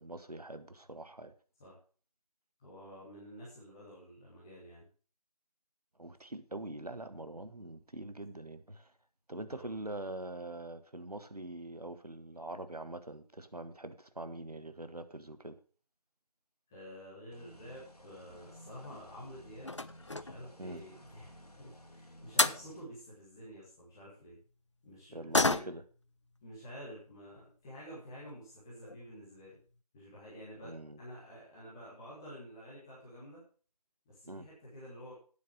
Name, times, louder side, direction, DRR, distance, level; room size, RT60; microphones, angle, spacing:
voice 1, 0.0-1.3 6.0-8.9 9.3-15.6 20.6-20.8 25.1-25.8 30.6-31.0 34.3-34.5, right 2 dB, 75° right, 1.5 m, -43 dB
voice 2, 2.6-4.9 9.5-9.7 16.7-19.8 20.2-24.4 24.8-25.7 26.4-29.6 29.9-30.7 31.0-33.4 34.0-35.1, equal, 5° left, 1.3 m, -50 dB
sound 1, 17.3-22.8, equal, 70° left, 2.7 m, -56 dB
sound 2, 18.6-19.1 19.6-20.5 22.0-22.1 22.4-22.7 25.3-26.0 26.4-26.5 26.9-27.0 27.8-27.9 28.2-28.3 28.7-29.0 29.3-29.4 29.7-29.8, left 2 dB, 50° left, 0.5 m, -31 dB
9.5 x 7.9 x 6.3 m
figure-of-eight pair, 165°, 20 cm